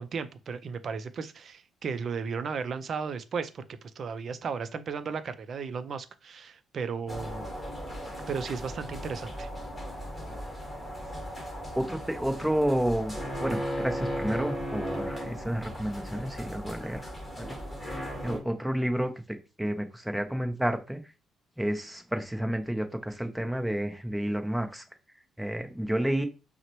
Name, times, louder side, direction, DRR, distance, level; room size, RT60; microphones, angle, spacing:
voice 1, 0.0-3.6 4.0-7.5 8.3-9.5, right 5 dB, 55° right, 0.4 m, -35 dB
sound 1, 7.1-18.4, equal, 15° left, 1.3 m, -36 dB
voice 2, 11.7-13.1 13.4-21.0 21.6-24.8 25.4-26.3, right 1 dB, 5° right, 0.6 m, -30 dB
5.6 x 2.1 x 3.0 m
cardioid pair, 90°, 0 cm